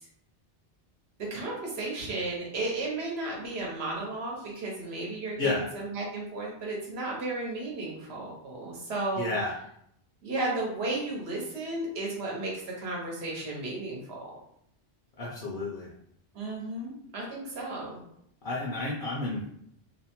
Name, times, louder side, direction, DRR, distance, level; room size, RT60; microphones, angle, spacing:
voice 1, 1.3-9.3 10.2-14.3 16.3-18.0, right 2 dB, 75° right, -2 dB, 1.0 m, -34 dB
voice 2, 9.2-9.6 15.2-15.9 18.4-19.4, left 2 dB, 60° left, -4 dB, 0.7 m, -31 dB
2.7 x 2.1 x 2.9 m, 0.71 s
omnidirectional pair, 1.1 m